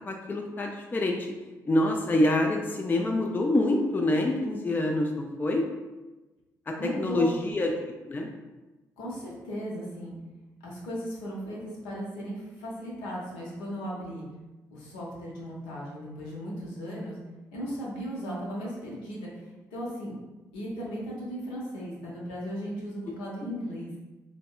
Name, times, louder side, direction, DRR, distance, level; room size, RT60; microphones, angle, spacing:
voice 1, 0.1-1.3 1.7-5.7 6.7-7.7 8.1-8.3 23.4-23.5, left 1 dB, 20° left, 1 dB, 0.3 m, -26 dB
voice 2, 6.8-7.3 9.0-10.1 10.6-14.2 14.7-17.2 17.5-19.3 19.7-20.1 20.5-23.9, equal, 70° left, -5 dB, 0.8 m, -36 dB
3.4 x 2.0 x 2.3 m, 1.1 s
figure-of-eight pair, 45°, 9 cm